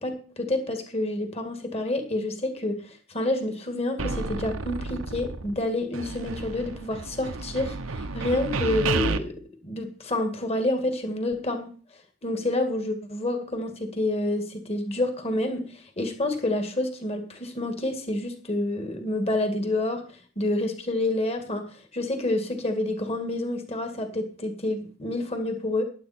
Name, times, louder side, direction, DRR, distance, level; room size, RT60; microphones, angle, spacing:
voice 1, 0.0-9.3 9.6-11.7 12.2-20.0 20.4-21.6 21.9-25.8, left 1 dB, 30° left, 6 dB, 2.0 m, -28 dB
sound 1, 4.0-5.7 5.9-9.2, right 3 dB, 75° right, 0.9 m, -31 dB
15.5 x 10.5 x 4.3 m, 0.41 s
head